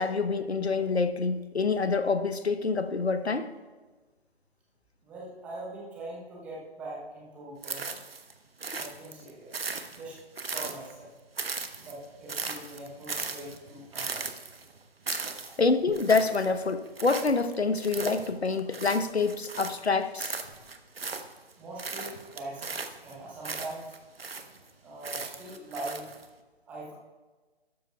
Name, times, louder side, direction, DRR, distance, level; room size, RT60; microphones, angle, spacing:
voice 1, 0.0-3.5 15.1-15.2 15.6-20.3, left 4 dB, 75° left, 10 dB, 1.0 m, -27 dB
voice 2, 5.0-7.9 8.7-11.1 11.8-14.3 21.6-24.0 24.8-26.1 26.7-26.9, right 2 dB, 5° right, -4 dB, 0.9 m, -42 dB
sound 1, 7.6-8.3 8.6-11.0 11.4-19.9 20.2-21.5 21.8-24.7 25.0-26.3, right 4 dB, 65° right, 1.1 m, -37 dB
14.0 x 13.0 x 2.4 m, 1.3 s
figure-of-eight pair, 150°, 32 cm